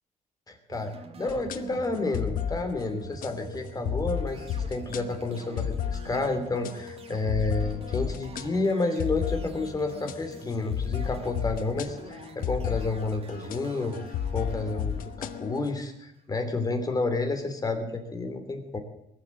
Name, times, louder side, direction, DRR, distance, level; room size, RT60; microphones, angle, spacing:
voice 1, 0.5-14.0 14.3-18.8, left 3 dB, 25° left, 6 dB, 3.0 m, -30 dB
sound 1, 0.7-16.1, right 4 dB, 45° right, 2.0 m, -46 dB
sound 2, 1.3-15.7, left 8 dB, 75° left, 1.0 m, -34 dB
21.0 x 7.8 x 8.4 m, 0.85 s
cardioid pair, 110°, 14 cm